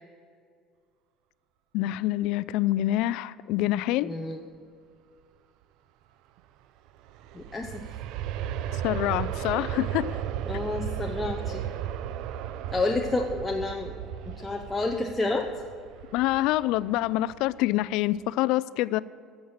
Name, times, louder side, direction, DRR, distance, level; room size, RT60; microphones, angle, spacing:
voice 1, 1.7-4.1 8.8-10.1 16.1-19.0, left 15 dB, 70° left, 18 dB, 0.3 m, -26 dB
voice 2, 4.0-4.4 7.3-7.9 10.5-11.6 12.7-14.0 14.3-15.5, left 3 dB, 10° left, 2 dB, 0.6 m, -29 dB
Aircraft, 6.9-17.7 18.2-18.3, right 10 dB, 60° right, 0.5 m, -35 dB
14.0 x 7.1 x 7.3 m, 2.2 s
cardioid pair, 165°, 0 cm